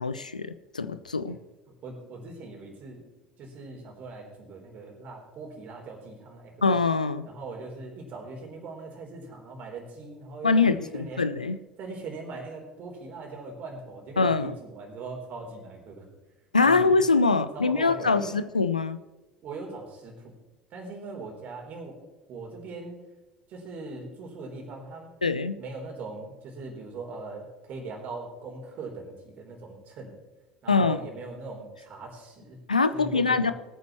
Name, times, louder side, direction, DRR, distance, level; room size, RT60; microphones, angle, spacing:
voice 1, 0.0-1.4 6.6-7.3 10.4-11.6 14.2-14.6 16.5-19.0 25.2-25.6 30.7-31.0 32.7-33.5, left 4 dB, 85° left, 13 dB, 0.5 m, -23 dB
voice 2, 1.8-3.0 3.4-6.6 7.2-11.3 11.8-16.1 16.6-17.0 17.5-18.4 19.4-20.4 20.7-22.0 22.3-23.0 23.5-25.1 25.6-30.1 30.6-32.6 32.9-33.5, right 3 dB, 45° right, 1 dB, 3.6 m, -40 dB
20.5 x 9.4 x 3.1 m, 1.2 s
figure-of-eight pair, 65°, 4 cm